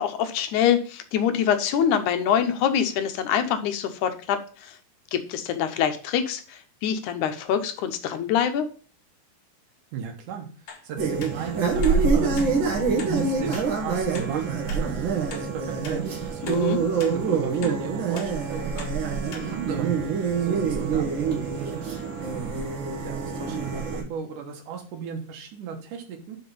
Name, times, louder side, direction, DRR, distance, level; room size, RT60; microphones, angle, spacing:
voice 1, 0.0-4.8 5.1-8.7 16.4-16.8, left 8 dB, 80° left, 8 dB, 2.3 m, -25 dB
voice 2, 9.9-10.5 10.8-14.9 15.3-16.4 17.0-19.9 20.4-22.2 23.0-26.4, right 6 dB, 80° right, 4 dB, 2.7 m, -36 dB
sound 1, 10.7-10.8 11.2-11.3 11.8-12.0 12.4-12.5 13.0-13.1 13.5-13.7 14.1-14.3 14.7-14.8 15.3-15.5 15.8-16.0 16.5-16.6 17.0-17.1 17.6-17.8 18.1-18.3 18.8-18.9 19.3-19.5 19.9-20.0, left 5 dB, 65° left, 2.5 m, -40 dB
sound 2, 11.0-24.0, right 5 dB, 50° right, 1.7 m, -26 dB
5.7 x 5.5 x 5.4 m, 0.39 s
omnidirectional pair, 3.5 m